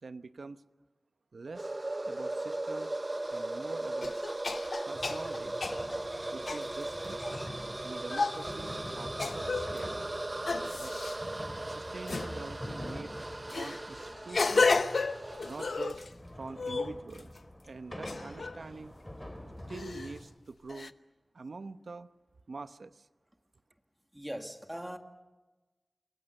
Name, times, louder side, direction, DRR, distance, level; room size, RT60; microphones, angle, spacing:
voice 1, 0.0-0.6 1.3-1.7 2.1-2.9 3.3-4.2 4.9-5.6 6.3-7.2 7.8-10.0 10.8-10.9 11.7-13.1 13.5-14.7 15.4-16.1 16.3-17.4 17.6-18.9 19.7-20.9 21.3-22.1 22.5-23.1, right 3 dB, 85° right, 0.9 m, -45 dB
sound 1, 1.5-15.8, right 2 dB, 35° right, 0.9 m, -38 dB
sound 2, 3.3-3.4 4.0-7.5 8.1-8.5 9.2-9.8 10.5-11.2 12.1-12.3 13.5-16.1 16.5-17.4 18.1-18.6 19.7-20.2 20.7-20.9, left 4 dB, 80° left, 0.8 m, -32 dB
sound 3, 4.9-20.2, left 1 dB, 15° left, 4.1 m, -46 dB
voice 2, 24.1-25.0, equal, 10° right, 2.3 m, -41 dB
29.0 x 22.5 x 6.7 m
wide cardioid pair, 80°, 0 cm